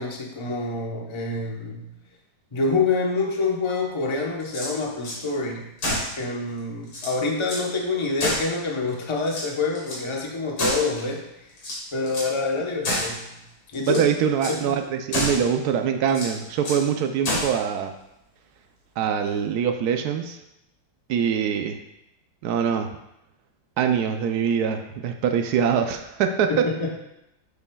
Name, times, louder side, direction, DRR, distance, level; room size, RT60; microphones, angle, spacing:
voice 1, 0.0-1.9 2.5-5.7 6.2-11.3 11.9-13.4 13.7-14.0 14.5-14.8 26.5-26.9, left 3 dB, 35° left, 0 dB, 0.4 m, -26 dB
sound 1, 4.4-5.2 5.8-6.2 6.6-6.7 6.9-7.7 8.2-8.9 9.2-10.0 10.6-11.1 11.6-12.4 12.8-13.2 13.7-14.1 14.4-14.6 15.1-15.5 16.1-16.9 17.2-17.6, left 1 dB, 70° left, 2.9 m, -29 dB
voice 2, 13.9-17.9 19.0-20.4 21.1-21.8 22.4-22.9 23.8-26.7, right 7 dB, 70° right, 6 dB, 0.9 m, -23 dB
8.4 x 7.0 x 2.3 m, 0.87 s
omnidirectional pair, 2.2 m